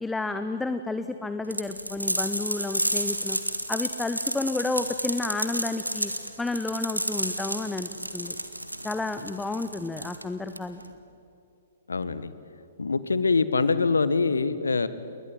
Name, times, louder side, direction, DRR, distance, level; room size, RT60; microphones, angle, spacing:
voice 1, 0.0-3.4 3.7-6.1 6.4-8.4 8.8-10.8, left 3 dB, 5° left, 10 dB, 0.9 m, -31 dB
sound 1, 1.5-10.9, right 1 dB, 90° right, 2.0 m, -31 dB
voice 2, 11.9-12.3 12.8-14.9, left 4 dB, 70° left, 15 dB, 1.4 m, -24 dB
30.0 x 21.5 x 9.2 m, 2.6 s
figure-of-eight pair, 115°, 0 cm